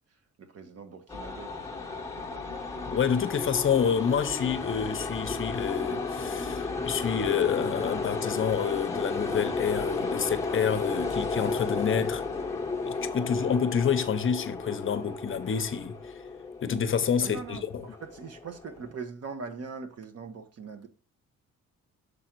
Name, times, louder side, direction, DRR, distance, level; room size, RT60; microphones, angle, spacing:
voice 1, 0.4-2.7 13.1-13.3 17.2-20.9, right 5 dB, 55° right, 1.2 m, -42 dB
sound 1, 1.1-18.8, left 4 dB, 10° left, 1.0 m, -33 dB
voice 2, 2.8-12.2 12.8-16.1 16.6-17.9, left 7 dB, 45° left, 0.7 m, -28 dB
6.8 x 3.8 x 4.5 m
cardioid pair, 90°, 30 cm